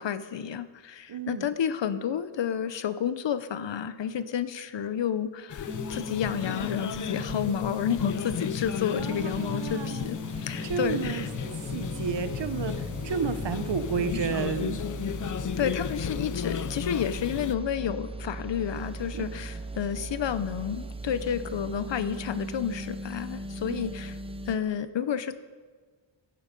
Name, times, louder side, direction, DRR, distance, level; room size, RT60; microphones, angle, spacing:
voice 1, 0.0-11.3 15.6-24.1 24.5-25.4, left 8 dB, 75° left, 13 dB, 0.8 m, -30 dB
voice 2, 1.1-1.5 9.0-10.1 10.6-11.3 11.6-14.8 19.1-19.3 23.6-23.9, right 6 dB, 70° right, 10 dB, 1.1 m, -32 dB
sound 1, 5.5-17.5, left 8 dB, 45° left, 0.4 m, -34 dB
sound 2, 5.7-24.6, right 1 dB, 15° right, 0.6 m, -38 dB
15.0 x 11.5 x 5.3 m, 1.5 s
wide cardioid pair, 175°, 44 cm